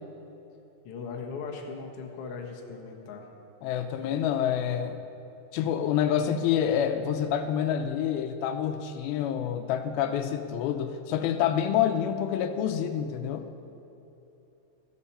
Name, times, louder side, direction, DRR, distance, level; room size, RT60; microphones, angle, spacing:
voice 1, 0.8-3.2, left 5 dB, 65° left, 1 dB, 1.5 m, -38 dB
voice 2, 3.6-5.0 5.5-13.5, left 9 dB, 85° left, 7 dB, 2.5 m, -27 dB
15.0 x 12.0 x 4.3 m, 3.0 s
omnidirectional pair, 4.4 m